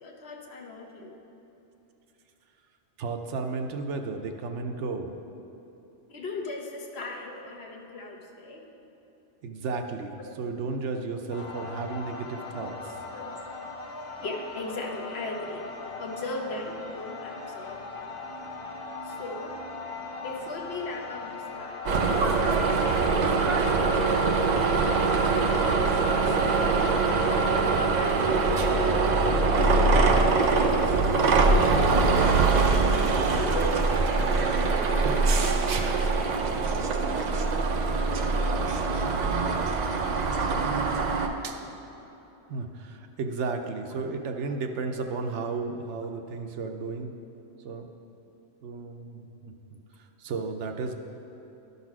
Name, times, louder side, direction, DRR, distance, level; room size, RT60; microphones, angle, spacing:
voice 1, 0.0-1.1 6.1-8.7 12.5-12.8 13.1-13.3 14.2-15.7 16.0-18.2 19.0-19.6 20.2-24.8 25.3-26.9 27.5-29.4 29.9-32.8 33.3-37.0 44.9-45.1, left 2 dB, 60° left, 1 dB, 1.1 m, -39 dB
voice 2, 3.0-5.1 9.4-13.0 41.4-41.8 42.5-47.1 47.6-47.9 48.6-50.9, right 4 dB, 70° right, 5 dB, 0.9 m, -34 dB
sound 1, 11.3-22.5, left 3 dB, 30° left, 0.6 m, -39 dB
sound 2, 21.9-41.3, right 3 dB, 50° right, 0.5 m, -23 dB
11.5 x 4.1 x 5.9 m, 3.0 s
omnidirectional pair, 1.3 m